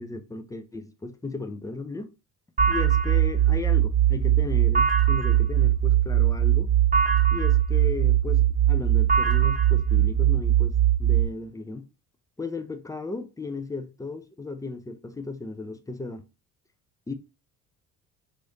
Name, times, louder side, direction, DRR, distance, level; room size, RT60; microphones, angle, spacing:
voice 1, 0.0-2.1 2.7-6.7 7.3-11.9 12.4-16.2 17.1-17.2, left 3 dB, 10° left, 0.4 m, -35 dB
sound 1, 2.6-11.3, right 10 dB, 20° right, 1.2 m, -21 dB
3.1 x 2.7 x 2.8 m
hypercardioid pair, 60°, 42 cm